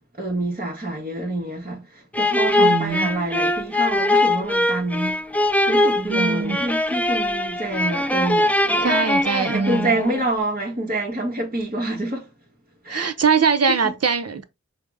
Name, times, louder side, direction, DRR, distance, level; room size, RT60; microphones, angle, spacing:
voice 1, 0.0-9.1 9.5-12.3 12.8-13.1 13.7-13.9, right 1 dB, 30° right, 1.0 m, -27 dB
sound 1, 2.1-10.2, left 1 dB, 5° left, 0.4 m, -21 dB
voice 2, 2.6-3.1 6.1-6.7 8.8-10.0 12.9-14.4, right 5 dB, 55° right, 0.6 m, -22 dB
4.9 x 2.0 x 3.3 m
wide cardioid pair, 65°, 29 cm